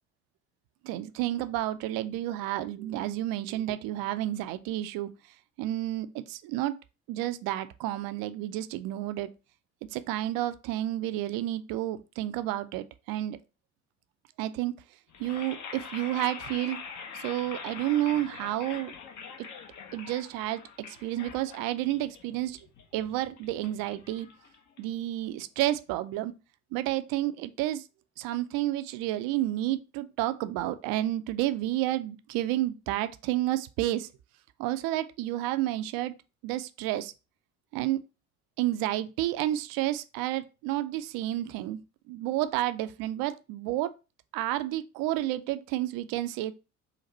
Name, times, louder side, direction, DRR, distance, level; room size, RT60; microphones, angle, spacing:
voice 1, 0.8-5.1 5.6-6.7 7.1-9.3 9.9-13.4 14.4-14.7 15.2-16.8 17.1-18.9 19.9-20.6 20.9-22.6 22.9-24.3 24.8-26.3 26.7-27.8 28.2-34.1 34.6-36.1 36.4-37.1 37.7-38.0 38.6-41.8 42.1-43.9 44.3-46.5, right 14 dB, 55° right, 0.5 m, -30 dB
sound 1, 15.1-25.2, left 6 dB, 45° left, 0.9 m, -44 dB
3.9 x 2.5 x 4.2 m
figure-of-eight pair, 55°, 43 cm